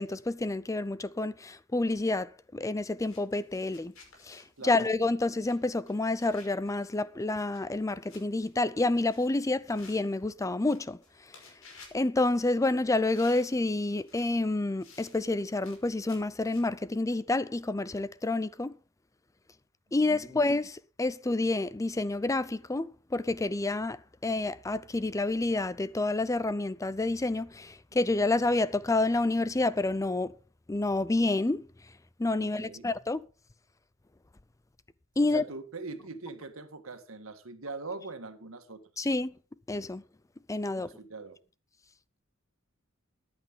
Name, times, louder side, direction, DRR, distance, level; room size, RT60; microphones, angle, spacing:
voice 1, 0.0-3.9 4.2-11.0 11.9-18.7 19.9-30.3 30.7-31.7 32.2-33.2 35.2-35.4 39.0-39.3 39.7-40.0 40.5-40.9, left 2 dB, 15° left, 0.5 m, -29 dB
sound 1, 2.9-16.9, left 4 dB, 80° left, 5.5 m, -57 dB
voice 2, 20.0-20.3 32.4-32.9 35.2-38.8 40.8-41.4, right 3 dB, 80° right, 1.7 m, -42 dB
14.5 x 10.5 x 3.8 m
head